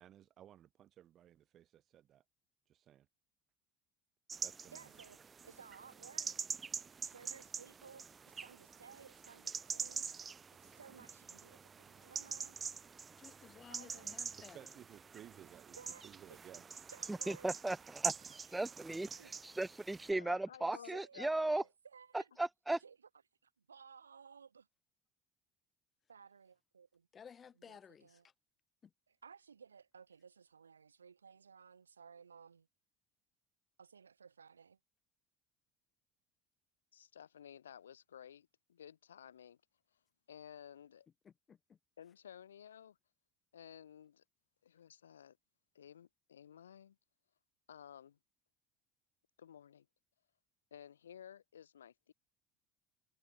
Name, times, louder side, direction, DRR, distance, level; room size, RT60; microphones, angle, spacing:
voice 1, 0.0-2.2 2.7-3.1 4.4-4.9 14.5-15.8 16.0-16.6, right 11 dB, 50° right, 1.3 m, -57 dB
sound 1, 4.3-20.1, right 5 dB, 30° right, 1.4 m, -45 dB
voice 2, 4.7-6.4 7.0-12.6 13.7-14.2 15.7-16.0 16.3-16.4 16.7-17.5 18.3-18.4 19.2-19.3 20.9-22.1 22.8-23.0 23.7-24.7 26.1-27.1 27.6-28.2 29.1-32.7 33.8-34.8, right 6 dB, 85° right, 1.0 m, -58 dB
voice 3, 13.2-14.8 27.1-28.3 28.8-28.9 41.2-41.8, left 7 dB, 35° left, 1.1 m, -57 dB
voice 4, 17.1-17.8 18.0-18.1 18.5-21.6 22.4-22.8, right 2 dB, 10° right, 0.9 m, -36 dB
voice 5, 20.1-21.6 36.9-39.6 39.9-40.0 40.3-41.1 42.0-43.0 43.5-44.2 44.6-45.4 45.7-47.0 47.7-48.2 49.4-49.9 50.7-52.1, left 9 dB, 80° left, 1.3 m, -55 dB
figure-of-eight pair, 65°, 0 cm